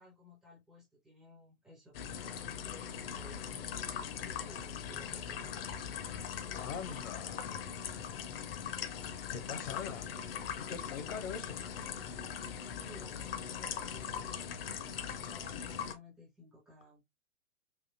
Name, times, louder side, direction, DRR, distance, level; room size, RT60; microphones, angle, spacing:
voice 1, 0.0-5.6 12.6-17.0, left 1 dB, ahead, 0.3 m, -57 dB
sound 1, 1.9-16.0, left 8 dB, 45° left, 0.6 m, -40 dB
voice 2, 6.5-7.7 9.3-10.1 10.6-11.7, left 7 dB, 65° left, 0.9 m, -42 dB
3.5 x 2.5 x 2.5 m
figure-of-eight pair, 110°, 41 cm